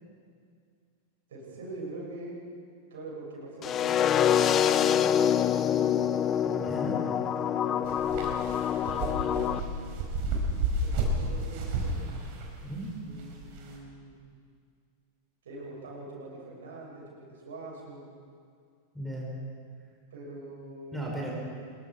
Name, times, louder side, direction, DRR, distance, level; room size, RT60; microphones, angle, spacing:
voice 1, 1.3-2.4 2.9-5.9 7.5-8.3 8.8-10.1 10.8-12.1 13.0-14.2 15.4-18.1 20.1-21.3, right 2 dB, 60° right, -3 dB, 6.8 m, -44 dB
sound 1, 3.6-9.6, left 9 dB, 30° left, 0.7 m, -26 dB
voice 2, 6.4-7.0 12.6-12.9 18.9-19.3 20.9-21.3, right 1 dB, ahead, -3 dB, 5.7 m, -36 dB
sound 2, 7.8-13.8, right 2 dB, 45° right, 4.7 m, -32 dB
25.0 x 22.0 x 4.7 m, 2.1 s
figure-of-eight pair, 90°, 0 cm